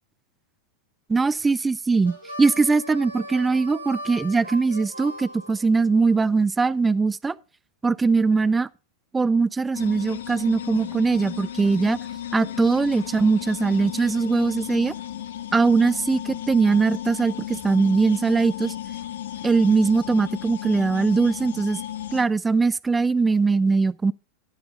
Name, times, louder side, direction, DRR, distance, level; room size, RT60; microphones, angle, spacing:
voice 1, 1.1-7.4 7.8-8.7 9.1-12.0 12.3-14.9 15.5-18.7 19.4-21.8 22.1-24.1, right 4 dB, 10° right, 0.4 m, -21 dB
Harmonica, 2.0-6.3, equal, 85° left, 2.8 m, -39 dB
sound 1, 9.7-22.3, left 11 dB, 60° left, 0.9 m, -35 dB
14.0 x 12.0 x 2.3 m
figure-of-eight pair, 90°, 0 cm